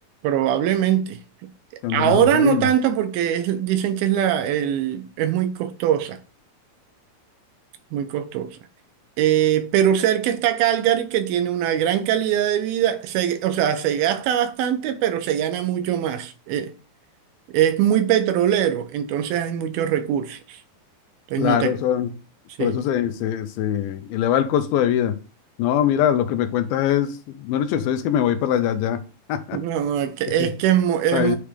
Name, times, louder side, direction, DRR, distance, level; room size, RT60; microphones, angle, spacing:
voice 1, 0.2-1.2 1.9-6.2 7.9-8.6 9.2-16.7 17.5-20.6 21.3-21.8 22.6-22.8 29.5-31.4, right 10 dB, 80° right, 2.4 m, -22 dB
voice 2, 1.8-2.7 21.4-22.1 22.6-25.2 25.6-29.0 29.3-29.6 30.4-30.5 31.1-31.4, left 10 dB, 80° left, 2.4 m, -22 dB
9.8 x 3.3 x 5.0 m
omnidirectional pair, 4.5 m